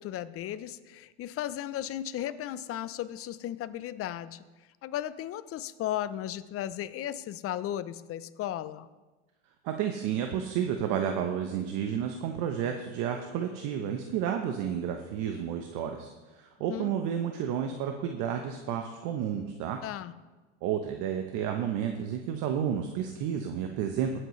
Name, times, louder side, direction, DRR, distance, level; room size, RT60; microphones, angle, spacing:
voice 1, 0.0-4.4 4.8-8.9 16.7-16.9 19.8-20.1, left 12 dB, 40° left, 15 dB, 0.7 m, -35 dB
voice 2, 9.6-19.8 20.6-24.2, right 8 dB, 60° right, 5 dB, 1.0 m, -31 dB
18.5 x 7.8 x 3.2 m, 1.2 s
hypercardioid pair, 95°, 35 cm